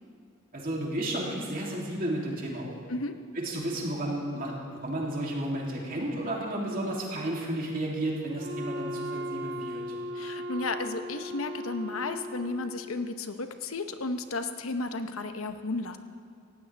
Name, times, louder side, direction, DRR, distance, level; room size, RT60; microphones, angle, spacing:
voice 1, 0.5-2.8 3.4-4.5 4.8-9.8, right 1 dB, 45° right, -3 dB, 2.9 m, -32 dB
Wind instrument woodwind instrument, 8.4-13.1, equal, 60° right, 1.2 m, -37 dB
voice 2, 10.1-16.0, left 3 dB, 90° left, 8 dB, 0.9 m, -33 dB
18.5 x 15.5 x 3.4 m, 2.4 s
head